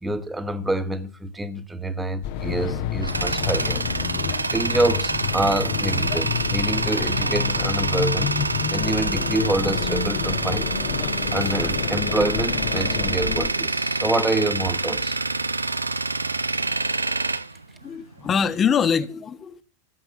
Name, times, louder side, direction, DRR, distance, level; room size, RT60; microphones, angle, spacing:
voice 1, 0.0-3.8 4.5-8.3 8.7-10.7 11.3-15.2, right 2 dB, 10° right, 1.7 m, -26 dB
sound 1, 2.2-13.5, left 9 dB, 45° left, 1.5 m, -29 dB
Tools, 2.6-18.4, right 3 dB, 80° right, 0.8 m, -27 dB
voice 2, 17.8-19.6, left 7 dB, 25° left, 1.4 m, -23 dB
16.5 x 7.9 x 9.4 m
figure-of-eight pair, 90°, 0 cm